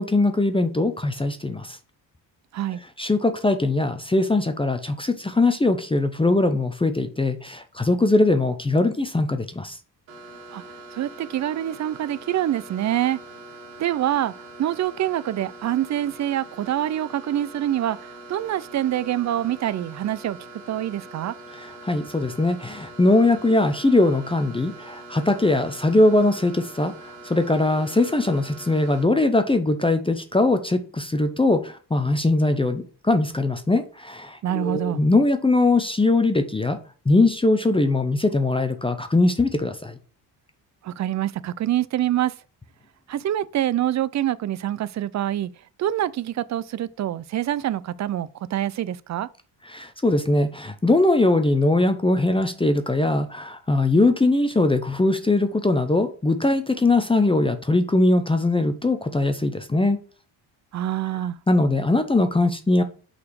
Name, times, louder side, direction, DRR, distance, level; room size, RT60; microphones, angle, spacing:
voice 1, 0.0-1.8 3.0-9.8 21.6-36.8 37.1-40.0 49.7-60.0 61.5-62.8, left 2 dB, 10° left, 0.6 m, -21 dB
sound 1, 10.1-29.0, right 2 dB, 80° right, 1.9 m, -43 dB
voice 2, 10.9-13.2 13.8-14.3 14.6-21.3 34.4-35.0 40.8-42.3 43.1-45.5 45.8-49.3 60.7-61.4, right 12 dB, 45° right, 0.4 m, -25 dB
5.8 x 4.2 x 4.7 m
cardioid pair, 105°, 43 cm